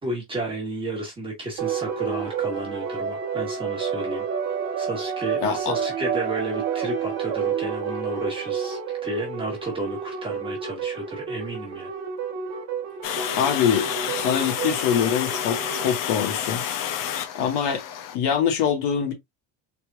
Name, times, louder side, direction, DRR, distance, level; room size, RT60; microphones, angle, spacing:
voice 1, 0.0-4.2 4.8-11.9, right 2 dB, 10° right, 1.3 m, -32 dB
sound 1, 1.6-16.0, right 7 dB, 40° right, 1.0 m, -30 dB
voice 2, 5.4-5.7 13.4-16.6 17.3-17.8 18.1-19.1, left 8 dB, 80° left, 1.7 m, -24 dB
Water, 13.0-18.2, left 9 dB, 50° left, 0.6 m, -29 dB
4.1 x 3.2 x 2.4 m
cardioid pair, 175°, 42 cm